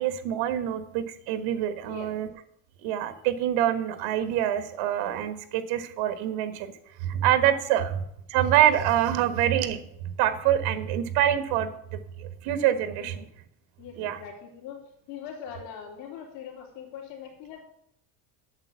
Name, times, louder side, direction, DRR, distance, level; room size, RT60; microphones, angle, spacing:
voice 1, 0.0-2.3 2.8-6.7 7.0-8.0 8.3-13.2 14.0-14.2, right 11 dB, 70° right, 10 dB, 1.5 m, -26 dB
voice 2, 13.8-14.8 15.1-17.6, left 8 dB, 85° left, 1 dB, 3.4 m, -42 dB
9.0 x 6.9 x 8.2 m, 0.71 s
cardioid pair, 165°, 49 cm